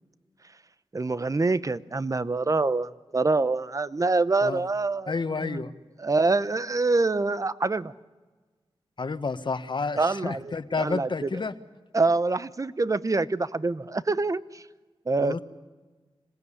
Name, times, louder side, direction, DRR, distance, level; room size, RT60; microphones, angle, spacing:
voice 1, 0.9-5.1 5.4-5.6 6.0-7.9 10.0-11.4 11.9-14.6 15.1-15.4, right 3 dB, 35° right, 16 dB, 0.8 m, -25 dB
voice 2, 5.1-5.7 9.0-11.5 15.2-15.4, left 4 dB, 55° left, 10 dB, 1.4 m, -30 dB
26.0 x 18.5 x 9.9 m, 1.3 s
wide cardioid pair, 75°, 10 cm